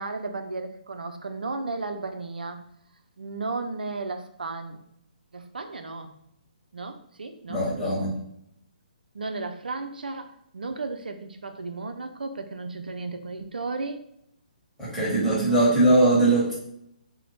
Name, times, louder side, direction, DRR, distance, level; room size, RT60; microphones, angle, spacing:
voice 1, 0.0-2.6 3.2-4.8 5.3-6.1 6.7-8.1 9.1-14.0 15.0-15.7, right 3 dB, 90° right, 7 dB, 0.4 m, -34 dB
voice 2, 7.5-8.1 14.8-16.5, right 1 dB, ahead, -10 dB, 1.2 m, -21 dB
2.6 x 2.1 x 3.0 m, 0.74 s
hypercardioid pair, 145°, 5 cm